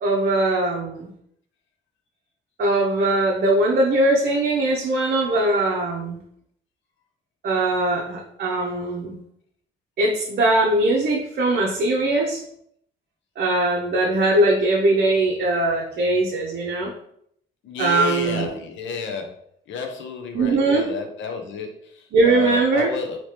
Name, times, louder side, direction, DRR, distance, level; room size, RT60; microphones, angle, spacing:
voice 1, 0.0-1.1 2.6-6.2 7.4-9.2 10.0-12.4 13.4-16.9 17.8-18.5 20.3-20.9 22.1-22.9, right 2 dB, 55° right, -2 dB, 0.7 m, -20 dB
voice 2, 17.6-19.3 19.7-23.2, left 5 dB, 70° left, 4 dB, 0.7 m, -30 dB
3.2 x 2.9 x 2.8 m, 0.70 s
cardioid pair, 90°, 20 cm